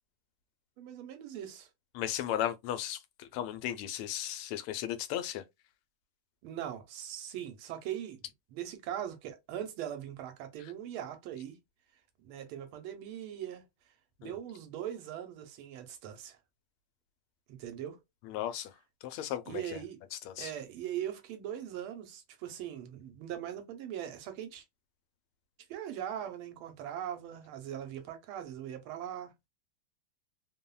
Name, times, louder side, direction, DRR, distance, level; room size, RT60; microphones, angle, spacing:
voice 1, 0.8-1.7 6.4-8.2 8.5-11.6 12.2-13.6 14.2-16.4 17.5-18.0 19.5-20.0 20.4-24.6 25.7-29.3, right 10 dB, 85° right, 1.5 m, -40 dB
voice 2, 1.9-5.4 14.2-14.4 18.3-18.7 19.0-19.8 20.3-20.5, left 11 dB, 90° left, 1.4 m, -35 dB
3.5 x 2.1 x 2.2 m
omnidirectional pair, 2.3 m